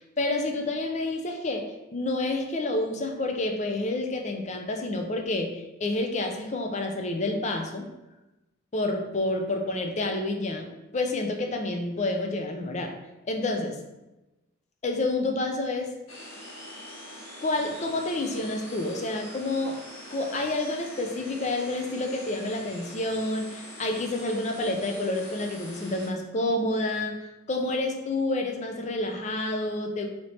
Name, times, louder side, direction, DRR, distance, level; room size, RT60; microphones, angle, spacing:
voice 1, 0.2-7.9 8.7-10.7 10.9-12.9 13.2-13.8 14.8-15.9 17.4-19.8 20.1-30.1, left 2 dB, 35° left, 4 dB, 0.4 m, -29 dB
sound 1, 16.1-26.1, equal, 70° left, 1.2 m, -44 dB
3.2 x 2.9 x 4.1 m, 1.0 s
head